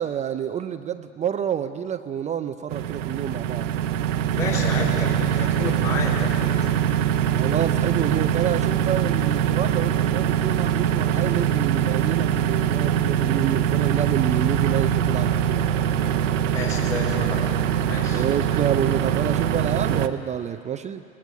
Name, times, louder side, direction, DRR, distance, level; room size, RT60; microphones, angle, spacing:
voice 1, 0.0-3.7 7.3-15.7 18.1-21.0, right 9 dB, 20° right, 9 dB, 0.5 m, -28 dB
sound 1, 2.7-20.1, right 9 dB, 65° right, 1.0 m, -23 dB
voice 2, 4.3-6.5 16.5-17.5 17.8-18.2, left 4 dB, 70° left, -4 dB, 4.0 m, -30 dB
22.5 x 18.5 x 8.3 m, 2.6 s
hypercardioid pair, 105°, 40 cm